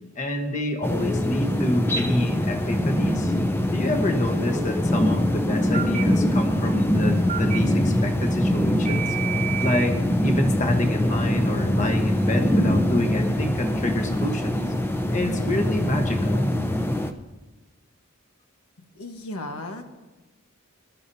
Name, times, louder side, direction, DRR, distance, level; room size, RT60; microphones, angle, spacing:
voice 1, 0.2-3.3 3.7-14.7 15.1-16.5, left 1 dB, 35° left, 4 dB, 1.2 m, -28 dB
sound 1, 0.8-17.1, left 1 dB, 10° left, 0.6 m, -23 dB
Telephone, 0.8-1.3 4.3-4.8 5.7-6.0 7.3-7.6 8.9-9.9, right 7 dB, 35° right, 0.9 m, -31 dB
voice 2, 18.9-19.8, left 1 dB, 85° left, 4 dB, 1.3 m, -35 dB
22.0 x 13.5 x 2.8 m, 1.2 s
head